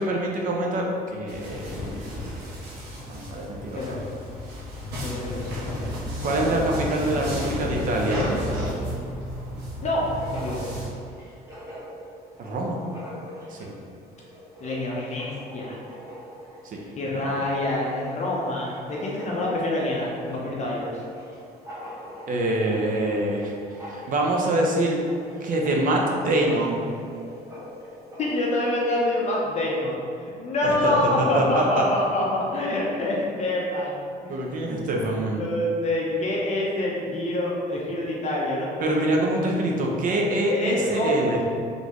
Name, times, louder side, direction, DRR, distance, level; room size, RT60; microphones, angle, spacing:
voice 1, 0.0-1.9 3.1-4.0 6.2-8.3 12.4-12.8 13.5-13.7 16.6-17.4 22.3-23.5 23.8-25.0 25.4-26.8 30.6-31.8 34.3-35.4 38.8-41.4, right 1 dB, 55° right, -1 dB, 0.8 m, -25 dB
sound 1, 1.3-10.9, equal, 80° right, 1.2 m, -32 dB
voice 2, 5.0-5.7 9.8-10.7 14.6-15.8 17.0-21.0 28.2-30.0 30.4-34.3 35.4-39.1 39.4-39.5 40.5-41.1, left 1 dB, 40° left, -4 dB, 0.8 m, -26 dB
Writing, 9.9-28.7, equal, 15° right, 1.4 m, -43 dB
4.1 x 3.3 x 3.1 m, 2.4 s
cardioid pair, 110°, 17 cm